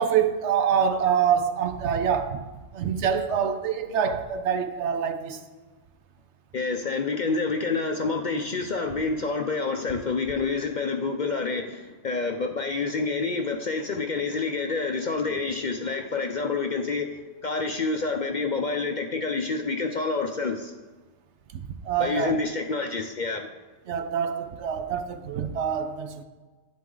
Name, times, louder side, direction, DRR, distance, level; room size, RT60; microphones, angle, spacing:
voice 1, 0.0-2.4 2.7-5.4 21.5-22.3 23.9-26.2, right 7 dB, 70° right, 0.9 m, -25 dB
voice 2, 6.5-17.1 17.4-20.7 22.0-23.5, left 4 dB, 50° left, 0.6 m, -28 dB
11.0 x 8.2 x 3.8 m
omnidirectional pair, 1.3 m